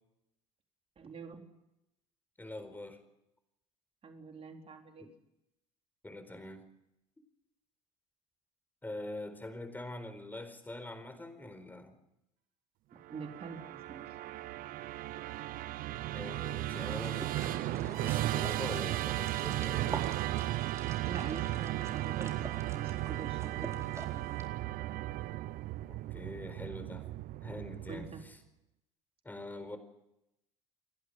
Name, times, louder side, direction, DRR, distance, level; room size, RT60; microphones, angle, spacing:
voice 1, 1.0-1.4 4.0-5.1 13.1-14.1 21.1-24.4 27.9-28.2, right 5 dB, 35° right, 3 dB, 4.1 m, -45 dB
voice 2, 2.4-3.0 6.0-6.7 8.8-11.9 16.1-20.1 25.9-27.1 27.4-28.4 29.2-29.8, left 1 dB, 10° left, 10 dB, 4.5 m, -44 dB
Musical instrument, 13.0-28.3, right 15 dB, 60° right, 0.7 m, -36 dB
sound 1, 16.8-24.5, right 2 dB, 20° right, 4.0 m, -48 dB
29.5 x 11.5 x 9.4 m, 0.87 s
hypercardioid pair, 75°, 16 cm